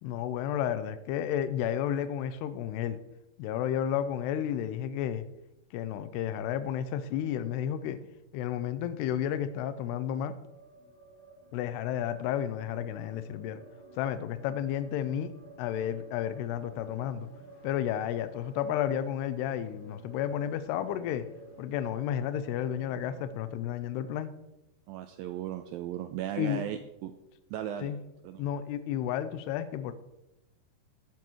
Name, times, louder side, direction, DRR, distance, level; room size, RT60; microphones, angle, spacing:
voice 1, 0.0-3.0 3.4-5.3 5.7-8.0 8.3-10.3 11.5-13.6 14.0-15.3 15.6-17.3 17.6-21.2 21.6-24.3 26.4-26.6 27.8-28.0 28.4-29.9, left 10 dB, 85° left, 11 dB, 2.7 m, -32 dB
sound 1, 8.1-8.2 8.8-23.2, right 1 dB, 35° left, 3.9 m, -52 dB
voice 2, 24.9-27.1 27.5-27.9 28.2-28.5, right 11 dB, 90° right, 8 dB, 2.0 m, -36 dB
14.0 x 11.5 x 3.1 m, 0.92 s
omnidirectional pair, 4.7 m